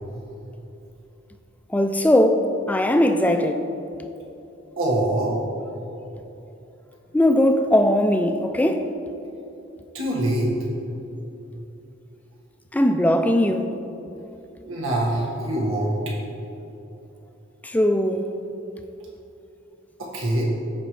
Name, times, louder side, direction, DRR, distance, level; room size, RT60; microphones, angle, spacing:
voice 1, 1.7-3.7 7.1-8.9 12.7-13.7 17.6-18.3, left 1 dB, 5° left, 0.3 m, -19 dB
voice 2, 4.8-5.3 9.9-10.5 14.6-16.0 20.0-20.4, right 1 dB, 85° right, 1.7 m, -24 dB
14.0 x 5.0 x 3.2 m
head